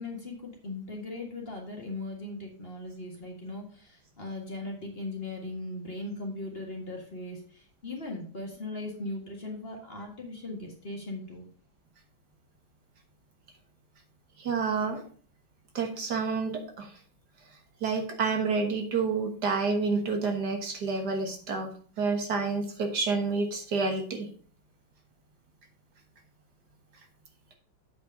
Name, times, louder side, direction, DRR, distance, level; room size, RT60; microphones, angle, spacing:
voice 1, 0.0-11.5, left 2 dB, 30° left, 0 dB, 1.8 m, -38 dB
voice 2, 14.4-15.0 15.8-16.9 17.8-21.7 22.0-24.3, right 4 dB, 60° right, 4 dB, 1.8 m, -29 dB
8.2 x 5.2 x 5.3 m, 0.43 s
omnidirectional pair, 2.1 m